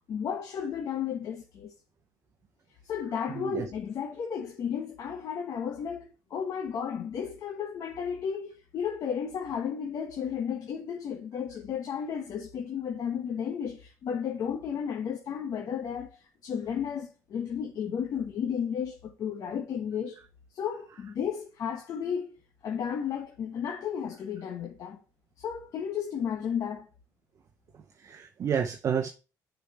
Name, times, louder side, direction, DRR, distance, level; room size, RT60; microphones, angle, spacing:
voice 1, 0.1-1.7 2.8-20.2 20.5-22.3 22.6-25.0 25.4-26.9, left 7 dB, 60° left, 1.2 m, -33 dB
voice 2, 3.0-3.7 20.1-20.2 20.7-21.1 27.7-29.1, right 7 dB, 50° right, 0.8 m, -32 dB
6.8 x 4.7 x 5.5 m
cardioid pair, 115°, 7 cm